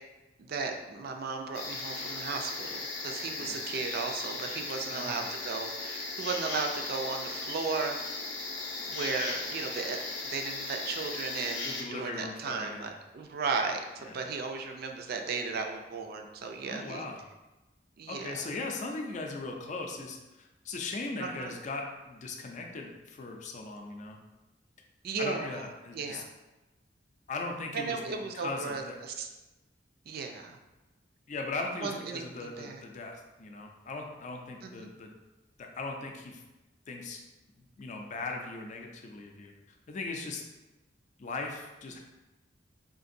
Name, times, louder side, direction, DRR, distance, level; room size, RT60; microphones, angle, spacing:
voice 1, 0.4-8.0 8.3-8.4 8.9-10.0 10.3-17.1 18.0-18.4 21.2-21.6 25.0-25.6 25.9-26.3 27.7-29.3 30.1-30.6 31.8-32.8 34.6-34.9, right 4 dB, 55° right, 4 dB, 0.4 m, -35 dB
sound 1, 1.5-11.8, left 3 dB, 90° left, 0.6 m, -37 dB
voice 2, 4.9-5.3 11.6-12.9 14.0-14.2 16.6-17.2 18.1-24.2 25.2-26.2 27.3-29.0 31.3-35.1 35.6-36.4 36.9-37.2 37.6-39.5 39.9-40.4 41.2-42.0, left 3 dB, 40° left, 2 dB, 0.4 m, -39 dB
3.8 x 2.5 x 2.6 m, 1.1 s
head